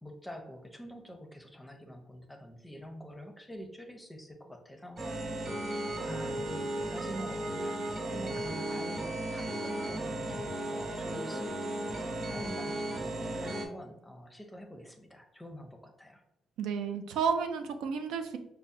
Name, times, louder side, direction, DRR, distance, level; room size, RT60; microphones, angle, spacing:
voice 1, 0.0-5.3 6.0-16.2, equal, 10° left, 4 dB, 0.5 m, -46 dB
sound 1, 5.0-13.7, right 1 dB, 40° right, 0.9 m, -35 dB
voice 2, 16.6-18.4, right 6 dB, 85° right, 6 dB, 0.3 m, -31 dB
5.4 x 2.0 x 2.6 m, 0.88 s
cardioid pair, 90°, 0 cm